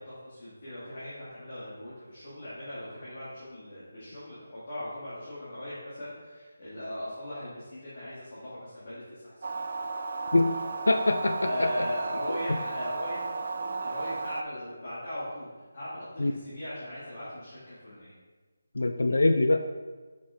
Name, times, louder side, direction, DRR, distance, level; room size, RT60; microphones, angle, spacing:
voice 1, 0.0-9.6 11.3-15.5 15.7-18.1, left 1 dB, 30° left, -11 dB, 1.7 m, -39 dB
sound 1, 9.4-14.4, right 4 dB, 40° right, 0.3 m, -34 dB
voice 2, 10.9-11.7 16.2-16.3 18.8-19.7, left 2 dB, 80° left, 7 dB, 0.4 m, -23 dB
5.3 x 5.1 x 3.9 m, 1.3 s
figure-of-eight pair, 180°, 0 cm